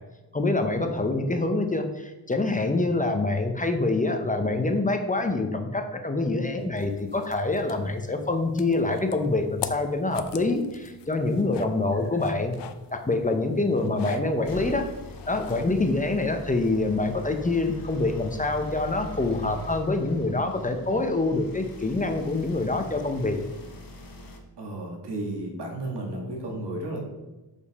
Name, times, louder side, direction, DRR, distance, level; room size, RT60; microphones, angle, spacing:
voice 1, 0.3-12.6 12.9-14.9 15.3-23.4, left 2 dB, 20° left, 5 dB, 0.8 m, -26 dB
sound 1, 6.8-15.9, left 9 dB, 80° left, 0.6 m, -43 dB
sound 2, 14.4-24.4, left 1 dB, 55° left, 1.2 m, -42 dB
voice 2, 24.6-27.0, right 2 dB, 70° right, 0 dB, 2.0 m, -34 dB
7.0 x 5.3 x 4.2 m, 1.1 s
cardioid pair, 95°, 42 cm